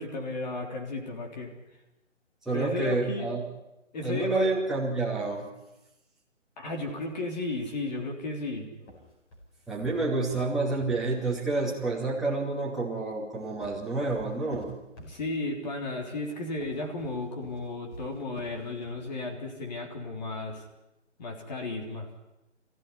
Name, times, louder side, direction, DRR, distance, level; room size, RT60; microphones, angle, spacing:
voice 1, 0.0-1.5 2.5-3.3 3.9-4.6 6.6-8.7 15.0-20.6 21.2-22.1, left 2 dB, 35° left, 1 dB, 3.7 m, -34 dB
voice 2, 2.5-3.4 4.0-5.5 9.7-14.7, right 3 dB, ahead, -6 dB, 2.5 m, -29 dB
sound 1, 8.8-11.4 13.1-15.6 16.5-19.1, equal, 15° left, 4.7 m, -48 dB
24.0 x 15.5 x 9.9 m, 0.97 s
figure-of-eight pair, 160°, 37 cm